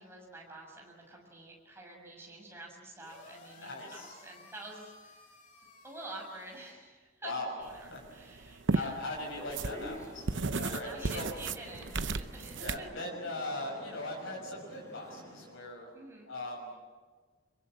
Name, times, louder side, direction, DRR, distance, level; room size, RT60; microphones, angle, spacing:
voice 1, 0.0-5.3 5.8-7.3 7.6-9.0 10.8-12.9 13.8-13.9 15.9-16.3, right 2 dB, 10° right, -1 dB, 6.5 m, -48 dB
sound 1, 3.0-6.7, left 3 dB, 40° left, 3.3 m, -56 dB
voice 2, 3.6-4.1 7.2-7.5 7.9-8.0 8.7-10.3 10.6-11.3 12.6-15.9 16.3-16.7, left 2 dB, 85° left, -1 dB, 6.0 m, -39 dB
sound 2, 7.7-12.8, right 3 dB, 65° right, 0.8 m, -34 dB
sound 3, 9.4-15.5, equal, 15° left, 6.8 m, -48 dB
25.5 x 23.5 x 7.8 m, 1.4 s
head